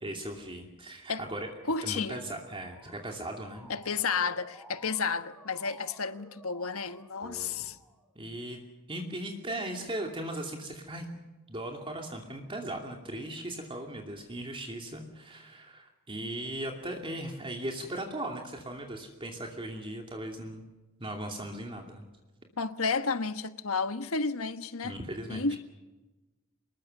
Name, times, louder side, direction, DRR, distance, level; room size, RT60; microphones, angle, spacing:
voice 1, 0.0-1.5 1.8-3.7 7.2-7.5 8.2-8.6 8.9-11.1 11.5-20.6 21.0-22.0 24.8-25.6, right 1 dB, 25° right, 2.7 m, -38 dB
voice 2, 1.7-2.2 3.7-7.8 22.6-25.0 25.3-25.6, left 4 dB, 90° left, 1.4 m, -31 dB
Motor vehicle (road) / Siren, 2.2-8.1, equal, ahead, 3.6 m, -54 dB
25.5 x 21.0 x 6.7 m
head